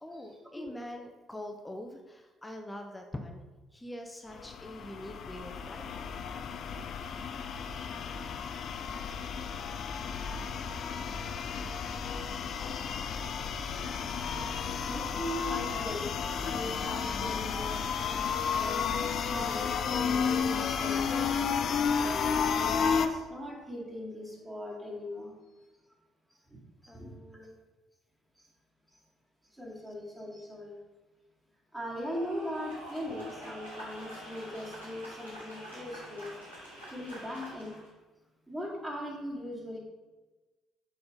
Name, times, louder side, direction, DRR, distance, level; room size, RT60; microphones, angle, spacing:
voice 1, 0.0-3.4 3.7-6.5 26.9-27.6, left 1 dB, 10° left, 4 dB, 0.8 m, -44 dB
sound 1, 4.3-23.1, left 6 dB, 50° left, 0.5 m, -32 dB
voice 2, 14.8-16.1 16.4-17.8 18.3-21.3 21.9-25.3 26.5-26.6 26.9-27.5 29.6-30.7 31.7-36.3 36.9-37.7 38.5-39.8, left 1 dB, 15° right, -5 dB, 2.3 m, -40 dB
sound 2, 31.9-37.9, equal, 90° right, 2.3 m, -46 dB
7.0 x 4.1 x 5.0 m, 1.2 s
figure-of-eight pair, 50°, 0 cm